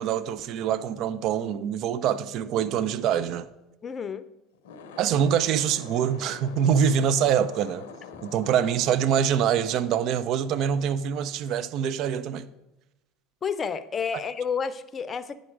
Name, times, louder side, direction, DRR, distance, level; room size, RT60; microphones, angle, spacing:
voice 1, 0.0-3.5 5.0-7.9 8.2-12.5, right 8 dB, 60° right, 0.4 m, -25 dB
voice 2, 3.8-4.3 8.1-8.2 13.4-15.3, left 6 dB, 35° left, 0.5 m, -30 dB
sound 1, 4.5-11.1, left 6 dB, 80° left, 0.6 m, -46 dB
9.6 x 5.2 x 4.7 m
hypercardioid pair, 80°, 0 cm